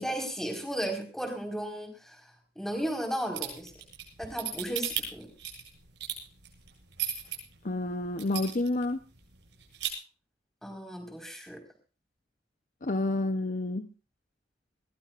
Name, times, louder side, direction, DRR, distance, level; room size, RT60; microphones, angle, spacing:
voice 1, 0.0-2.2 2.6-3.7 4.2-5.3 10.6-11.6, right 1 dB, 5° left, 4.6 m, -34 dB
sound 1, 3.3-7.4 7.8-7.9 8.2-8.8 9.2-9.3 9.5-9.9, right 10 dB, 85° right, 7.9 m, -34 dB
voice 2, 7.6-9.0 12.8-13.9, left 2 dB, 45° left, 0.8 m, -29 dB
21.5 x 20.0 x 2.5 m
head